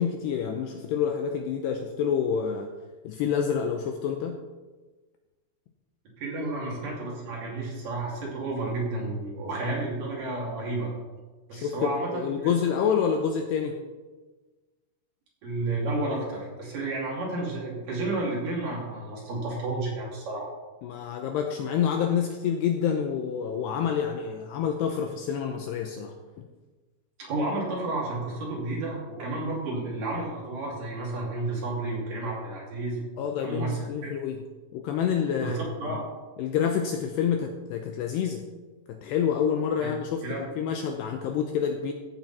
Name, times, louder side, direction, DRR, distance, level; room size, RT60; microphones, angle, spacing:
voice 1, 0.0-2.7 3.0-4.4 11.5-13.8 20.8-26.1 33.2-34.4 34.7-36.0 36.4-38.4 38.9-40.2 40.6-41.9, left 7 dB, 80° left, 4 dB, 2.5 m, -28 dB
voice 2, 6.2-10.9 11.5-12.5 15.4-20.5 27.2-33.0 33.4-34.1 35.4-36.0 39.8-39.9 40.2-40.5, right 2 dB, 50° right, -3 dB, 3.9 m, -31 dB
15.0 x 9.0 x 4.2 m, 1.3 s
omnidirectional pair, 5.5 m